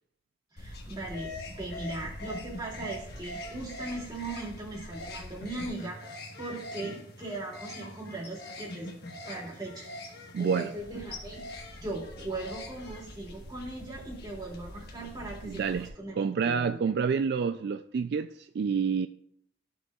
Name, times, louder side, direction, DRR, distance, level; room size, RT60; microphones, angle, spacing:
voice 1, 0.5-6.0 6.4-8.9 9.3-10.1 10.4-16.8, right 2 dB, 25° right, 2.5 m, -39 dB
sound 1, 0.6-15.9, left 1 dB, 60° left, 1.4 m, -43 dB
voice 2, 10.3-10.7 15.4-19.1, right 6 dB, 60° right, 0.3 m, -28 dB
13.5 x 6.1 x 2.4 m
head